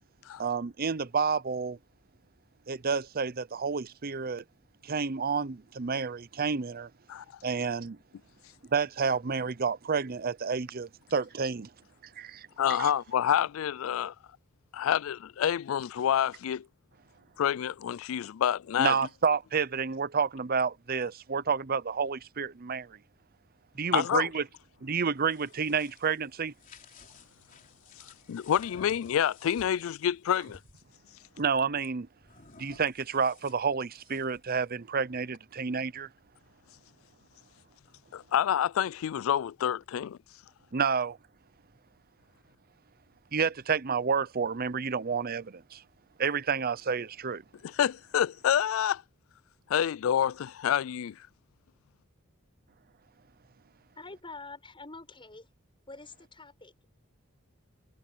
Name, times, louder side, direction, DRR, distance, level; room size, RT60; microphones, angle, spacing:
voice 1, 0.4-1.8 2.7-4.4 4.8-6.9 7.4-8.0 8.7-11.7 12.2-12.5 12.8-12.9 18.8-23.0 23.8-24.4 24.8-26.5 31.4-32.1 32.6-36.1 40.7-41.2 43.3-45.8 46.2-47.4, right 5 dB, 45° right, 0.7 m, -30 dB
voice 2, 12.6-14.1 14.7-16.7 17.4-19.0 23.9-24.3 28.3-30.6 38.1-40.2 47.6-49.0 49.7-51.2, left 9 dB, 70° left, 0.3 m, -28 dB
sound 1, 25.0-30.8 32.2-34.5, left 4 dB, 40° left, 3.6 m, -55 dB
voice 3, 54.0-55.5 55.9-56.9, left 3 dB, 25° left, 7.2 m, -46 dB
head